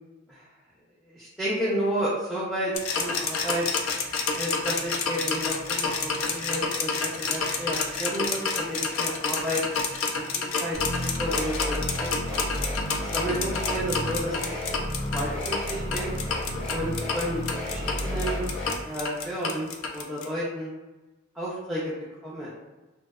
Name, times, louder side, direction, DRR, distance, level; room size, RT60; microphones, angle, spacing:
voice 1, 1.1-3.7 4.4-9.6 10.3-11.7 12.0-12.5 13.0-14.5 15.1-16.1 16.7-18.4 18.8-20.7 21.3-21.8 22.2-22.5, equal, ahead, -10 dB, 0.4 m, -31 dB
sound 1, 2.7-20.3, left 4 dB, 75° left, 0.3 m, -29 dB
sound 2, 10.7-18.7, equal, 30° left, 0.7 m, -32 dB
2.7 x 2.1 x 2.2 m, 1.1 s
head